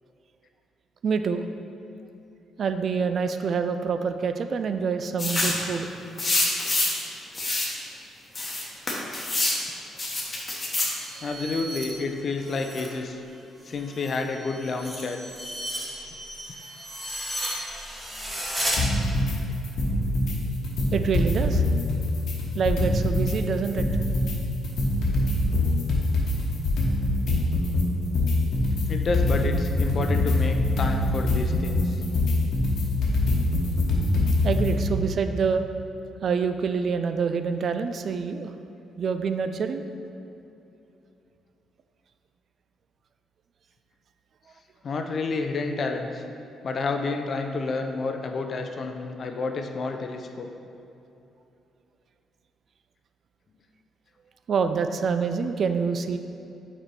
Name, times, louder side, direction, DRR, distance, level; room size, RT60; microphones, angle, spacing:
voice 1, 1.0-1.4 2.6-5.9 20.9-21.6 22.6-23.9 34.4-35.7 36.2-38.5 39.0-39.8 54.5-56.2, right 5 dB, 55° right, 9 dB, 0.3 m, -26 dB
sound 1, 5.2-5.6 6.2-7.0 7.3-7.7 8.4-9.6 10.0-11.0, left 2 dB, 30° left, 1.1 m, -26 dB
sound 2, 10.5-12.9 13.3-18.8, right 1 dB, 15° right, 1.2 m, -35 dB
voice 2, 11.2-13.2 13.6-15.2 28.9-32.0 44.8-46.2 46.6-50.5, left 3 dB, 50° left, 5 dB, 0.5 m, -30 dB
sound 3, 18.8-19.4 19.6-20.4 20.6-23.4 23.6-34.8, left 2 dB, 70° left, 1.1 m, -24 dB
5.1 x 4.3 x 4.6 m, 2.8 s
cardioid pair, 90°, 0 cm